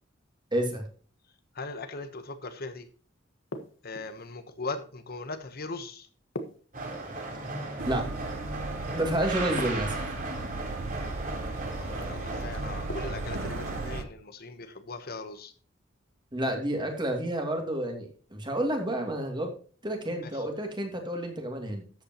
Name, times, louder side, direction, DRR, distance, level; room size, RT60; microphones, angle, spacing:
voice 1, 0.5-0.8 7.9-8.1 8.9-10.0 16.3-19.5 19.8-21.8, right 1 dB, 25° right, 3 dB, 2.5 m, -30 dB
voice 2, 1.5-2.9 3.8-6.1 11.8-15.5 20.2-20.5, left 3 dB, 50° left, 9 dB, 1.2 m, -39 dB
sound 1, 3.5-4.3 6.4-7.4 9.6-10.3 12.9-13.5, left 1 dB, 70° left, 1.5 m, -41 dB
sound 2, 6.7-14.0, right 2 dB, 45° right, 3.6 m, -36 dB
sound 3, 7.8-14.1, right 3 dB, 90° right, 0.9 m, -37 dB
13.0 x 8.7 x 3.0 m, 0.40 s
head